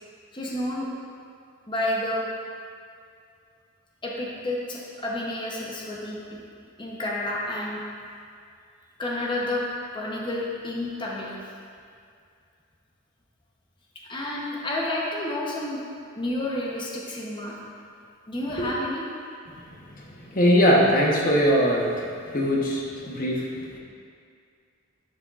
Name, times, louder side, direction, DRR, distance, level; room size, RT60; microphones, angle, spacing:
voice 1, 0.3-0.9 1.7-2.2 4.0-6.4 6.8-7.8 9.0-9.6 9.9-11.4 14.1-15.8 16.2-17.5 18.3-19.0, left 1 dB, 25° left, -4 dB, 0.9 m, -30 dB
voice 2, 20.3-22.0 22.3-23.8, equal, 40° left, -3 dB, 1.1 m, -21 dB
10.5 x 6.5 x 2.5 m, 2.3 s
head